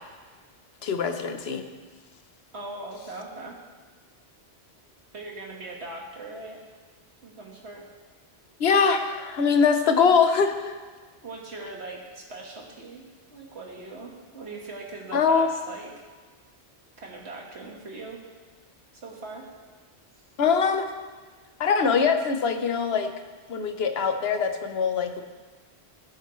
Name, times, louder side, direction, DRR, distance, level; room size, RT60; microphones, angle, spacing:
voice 1, 0.8-1.6 8.6-10.7 15.1-15.5 20.4-20.9 21.6-23.1 23.5-25.2, left 5 dB, 70° left, 7 dB, 1.1 m, -22 dB
voice 2, 2.5-3.6 5.1-6.6 7.2-7.8 11.2-13.0 13.3-15.9 17.0-18.2 19.0-19.5, right 2 dB, 75° right, -1 dB, 1.9 m, -40 dB
16.5 x 9.0 x 3.1 m, 1.4 s
omnidirectional pair, 1.1 m